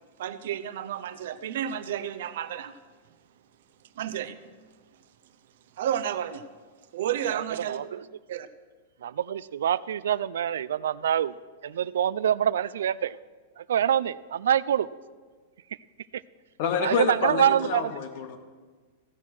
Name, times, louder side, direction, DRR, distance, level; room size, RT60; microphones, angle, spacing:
voice 1, 0.2-2.7 4.0-4.4 5.8-6.4 6.9-7.8 8.3-8.5, right 10 dB, 60° right, 0.7 m, -31 dB
voice 2, 7.7-8.0 9.0-11.3 11.6-13.1 13.7-14.9 16.8-17.9, right 9 dB, 85° right, 0.4 m, -25 dB
voice 3, 16.6-18.4, left 7 dB, 40° left, 1.1 m, -28 dB
15.5 x 6.3 x 6.0 m
supercardioid pair, 175°, 0 cm